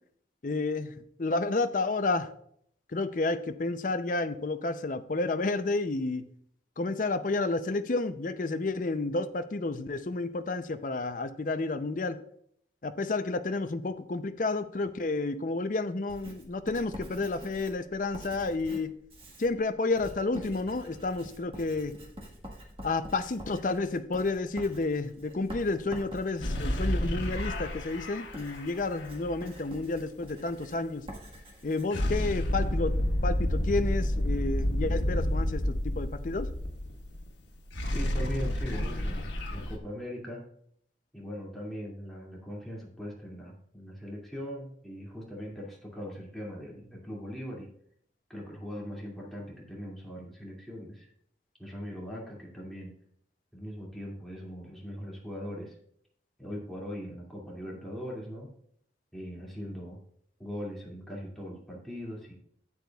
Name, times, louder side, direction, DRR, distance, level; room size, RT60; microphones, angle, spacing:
voice 1, 0.4-2.3 2.9-6.3 6.8-12.2 12.8-18.9 19.4-21.9 22.8-31.1 31.6-32.9 33.2-36.5, left 3 dB, 45° left, 9 dB, 0.5 m, -31 dB
Writing, 16.1-32.7, equal, 30° right, 1.5 m, -47 dB
sound 1, 26.4-29.3 31.9-37.3 37.5-39.8, left 1 dB, 80° left, 1.4 m, -30 dB
voice 2, 37.9-40.4 41.1-47.7 48.3-51.1 51.6-52.9 53.5-55.7 56.4-58.5 59.1-60.0 60.4-62.3, equal, ahead, -4 dB, 2.3 m, -40 dB
12.0 x 8.3 x 2.3 m, 0.66 s
head